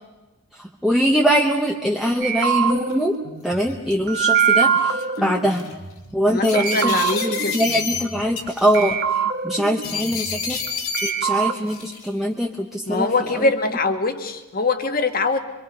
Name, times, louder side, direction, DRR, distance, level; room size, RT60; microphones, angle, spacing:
voice 1, 0.5-5.7 6.1-10.6 11.0-13.5, equal, ahead, -1 dB, 1.0 m, -23 dB
sound 1, 2.2-6.2 6.5-8.5 8.7-10.7 10.9-11.5, right 7 dB, 50° right, 1.5 m, -24 dB
sound 2, 2.9-3.0 3.6-4.2 5.0-5.2 5.5-5.7 6.4-8.0 8.4-8.9 9.8-11.1 11.7-12.1, left 6 dB, 70° left, 2.4 m, -29 dB
voice 2, 6.3-7.6 12.9-15.4, left 3 dB, 40° left, 7 dB, 1.5 m, -23 dB
25.0 x 25.0 x 5.4 m, 1.1 s
head